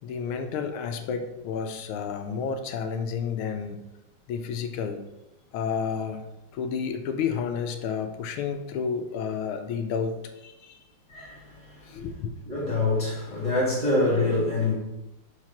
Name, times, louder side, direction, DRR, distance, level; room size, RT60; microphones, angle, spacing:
voice 1, 0.0-3.8 4.3-5.0 5.5-6.3 6.5-10.8 11.9-12.3, left 6 dB, 80° left, 1.5 m, -31 dB
voice 2, 11.1-12.1 12.4-14.7, left 2 dB, 20° left, 2.0 m, -26 dB
4.9 x 4.1 x 5.7 m
omnidirectional pair, 2.3 m